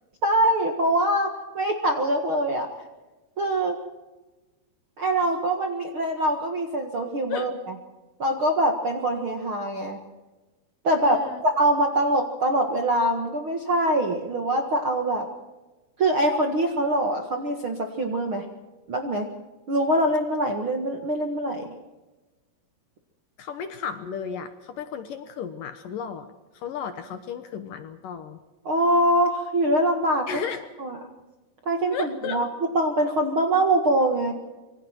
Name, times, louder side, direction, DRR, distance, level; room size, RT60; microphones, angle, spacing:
voice 1, 0.2-2.7 3.4-3.8 5.0-7.5 8.2-10.0 10.8-15.3 16.0-18.5 18.9-19.3 19.7-21.7 28.7-30.4 30.8-31.0 31.7-32.5 32.7-34.3, right 1 dB, 45° right, 4 dB, 1.8 m, -23 dB
voice 2, 11.0-11.4 23.4-26.3 26.5-28.4 30.3-30.6 31.9-32.4, left 7 dB, 65° left, 9 dB, 2.5 m, -34 dB
26.5 x 24.0 x 4.6 m, 1.1 s
omnidirectional pair, 4.7 m